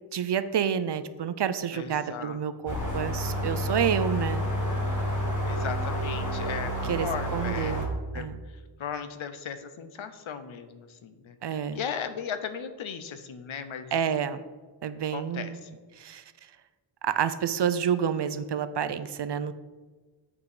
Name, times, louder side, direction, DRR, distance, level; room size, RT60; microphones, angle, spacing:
voice 1, 0.1-4.4 6.8-8.4 11.4-11.8 13.9-14.4 14.8-15.6 16.0-16.2 17.0-19.5, right 8 dB, 60° right, 13 dB, 0.5 m, -29 dB
voice 2, 1.7-2.4 5.4-7.8 8.1-8.3 8.8-13.9 15.1-15.8, left 7 dB, 85° left, 9 dB, 0.7 m, -37 dB
sound 1, 2.7-7.9, equal, 40° left, 1.5 m, -29 dB
8.2 x 4.8 x 4.9 m, 1.4 s
wide cardioid pair, 100°, 46 cm